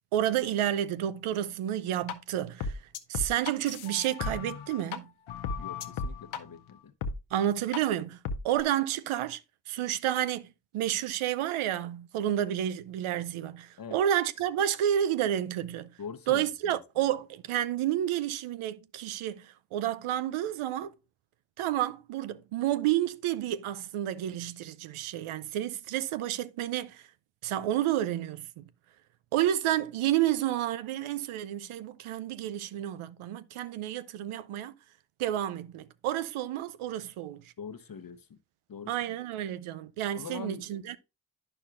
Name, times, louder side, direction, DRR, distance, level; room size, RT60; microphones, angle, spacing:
voice 1, 0.1-2.8 3.1-5.1 7.3-8.2 8.4-9.4 9.7-15.9 16.3-20.9 21.6-27.0 27.4-28.6 29.3-34.7 35.2-37.4 38.9-41.0, right 11 dB, 85° right, 0.6 m, -30 dB
sound 1, 2.1-2.2 2.6-5.0 5.3-6.4 7.0-7.1 7.7-7.8 8.2-8.6, left 5 dB, 75° left, 0.8 m, -35 dB
voice 2, 5.6-6.9 13.8-14.0 16.0-17.1 37.6-38.4 38.7-39.2 40.1-40.6, left 6 dB, 45° left, 0.9 m, -43 dB
9.6 x 6.0 x 2.4 m
supercardioid pair, 45°, 48 cm